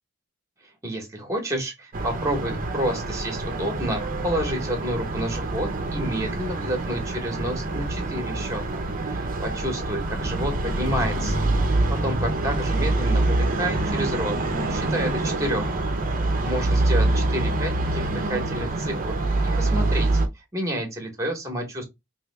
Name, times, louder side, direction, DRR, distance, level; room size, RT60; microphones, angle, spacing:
voice 1, 0.8-11.5 11.9-14.4 14.7-15.7 16.4-19.2 19.4-20.2 20.5-21.8, equal, 15° right, 1.1 m, -30 dB
sound 1, 1.9-20.3, right 2 dB, 40° right, 0.7 m, -25 dB
3.2 x 2.7 x 3.2 m
head